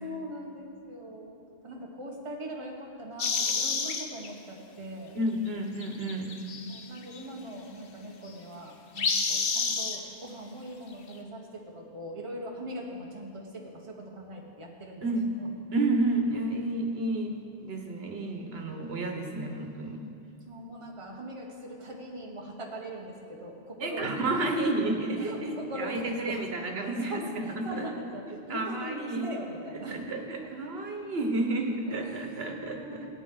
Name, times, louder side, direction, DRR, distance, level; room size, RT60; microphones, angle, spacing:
voice 1, 0.0-5.2 6.5-15.1 15.4-15.5 20.5-24.2 24.5-24.7 25.2-26.4 27.0-30.1 31.9-33.2, equal, 30° right, -1 dB, 1.4 m, -41 dB
sound 1, 3.2-4.3 5.8-7.2 9.0-10.0, left 5 dB, 65° left, 1.0 m, -29 dB
voice 2, 5.1-6.4 15.0-15.3 15.7-20.0 23.8-27.9 28.5-29.3 29.9-33.1, right 2 dB, 75° right, 3 dB, 1.4 m, -31 dB
17.5 x 9.3 x 3.9 m, 2.4 s
omnidirectional pair, 1.0 m